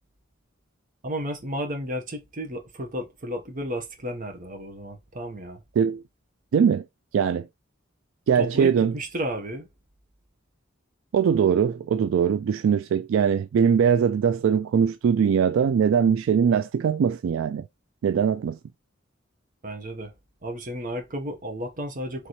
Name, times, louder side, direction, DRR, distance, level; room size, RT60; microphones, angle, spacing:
voice 1, 1.0-5.6 8.3-9.7 19.6-20.1 20.4-22.3, equal, 40° right, 1.1 m, -33 dB
voice 2, 6.5-6.8 7.1-7.5 8.3-8.9 11.1-17.6 18.0-18.6, right 7 dB, 75° right, 0.3 m, -21 dB
4.1 x 3.2 x 3.1 m
head